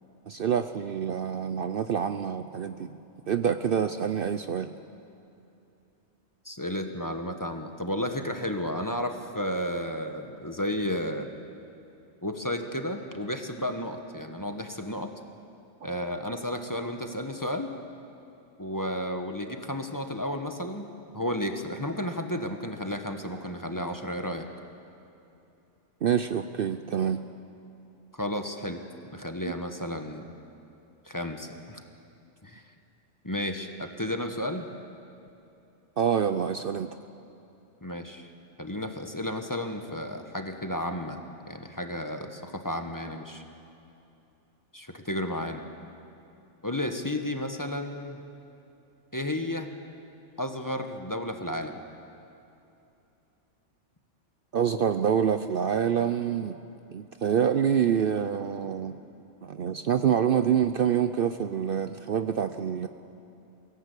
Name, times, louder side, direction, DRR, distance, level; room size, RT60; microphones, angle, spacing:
voice 1, 0.3-2.9 3.3-4.7 26.0-27.2 36.0-36.9 54.5-56.6 56.9-59.0 59.4-62.9, right 8 dB, 55° right, 10 dB, 0.7 m, -26 dB
voice 2, 6.4-11.3 12.2-15.1 15.8-17.7 18.6-20.9 21.1-24.4 28.1-28.8 29.1-30.3 31.0-31.8 32.4-32.6 33.2-34.7 37.8-38.3 38.6-41.2 41.5-43.4 44.7-45.6 46.6-48.2 49.1-49.7 50.4-51.7, left 1 dB, 15° left, 5 dB, 1.2 m, -32 dB
23.0 x 17.0 x 8.3 m, 2.9 s
omnidirectional pair, 1.2 m